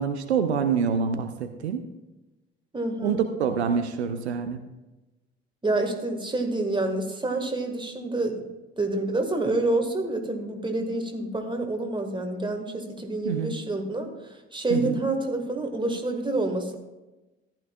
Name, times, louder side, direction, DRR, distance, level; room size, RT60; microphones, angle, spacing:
voice 1, 0.0-1.8 3.0-4.6 13.2-13.6 14.7-15.0, right 6 dB, 80° right, 8 dB, 0.6 m, -26 dB
voice 2, 2.7-3.2 5.6-8.5 8.8-16.8, right 2 dB, 15° right, 4 dB, 1.8 m, -28 dB
14.5 x 11.5 x 2.4 m, 1.1 s
figure-of-eight pair, 45°, 32 cm